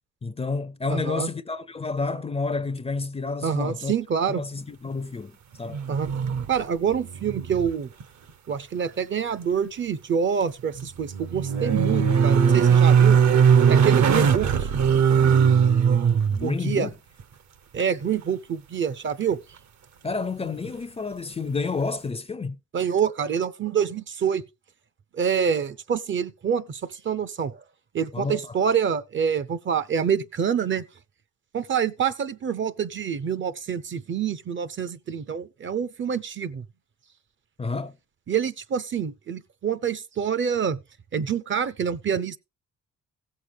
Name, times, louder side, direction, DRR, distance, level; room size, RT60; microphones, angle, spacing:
voice 1, 0.2-3.9 4.3-5.3 5.6-5.9 16.3-16.9 20.0-22.6 28.1-28.6 37.6-38.0, left 4 dB, 20° left, 0.5 m, -30 dB
voice 2, 0.9-1.3 3.4-4.4 5.9-6.1 6.5-7.9 8.5-13.2 13.7-14.7 16.4-16.9 17.7-19.4 22.7-24.4 25.1-27.6 27.9-30.8 31.5-36.6 38.3-40.8 41.1-42.4, right 7 dB, 40° right, 0.6 m, -26 dB
sound 1, 5.7-6.6 6.9-7.7 8.0-8.1 10.6-16.4 19.3-19.4, right 7 dB, 65° right, 0.9 m, -19 dB
16.0 x 6.5 x 3.4 m
cardioid pair, 90°, 30 cm